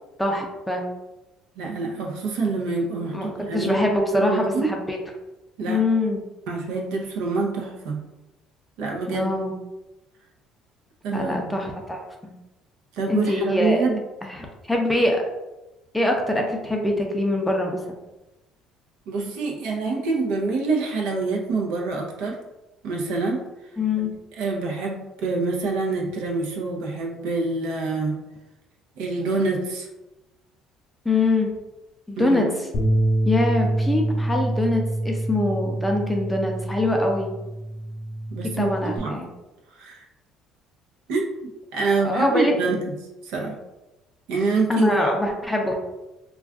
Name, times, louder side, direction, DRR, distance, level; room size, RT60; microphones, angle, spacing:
voice 1, 0.2-0.8 3.1-5.0 5.7-6.2 9.1-9.5 11.1-12.3 13.1-13.8 14.2-15.2 15.9-17.8 23.8-24.1 31.1-31.5 32.1-32.5 33.3-37.3 38.6-39.3 42.0-42.5 44.7-45.7, left 2 dB, 5° left, 1 dB, 0.4 m, -23 dB
voice 2, 1.6-4.7 5.6-5.8 6.5-8.0 8.8-9.3 11.0-11.5 12.9-14.0 19.1-22.4 22.8-23.5 24.3-28.2 29.0-29.9 32.2-32.5 38.3-39.1 39.7-40.1 41.1-41.3 41.7-42.8 43.2-43.6 44.3-45.2, right 3 dB, 90° right, 0 dB, 0.6 m, -26 dB
Bass guitar, 32.7-39.0, right 1 dB, 45° left, 0.7 m, -26 dB
2.3 x 2.3 x 3.5 m, 1.0 s
cardioid pair, 135°, 0 cm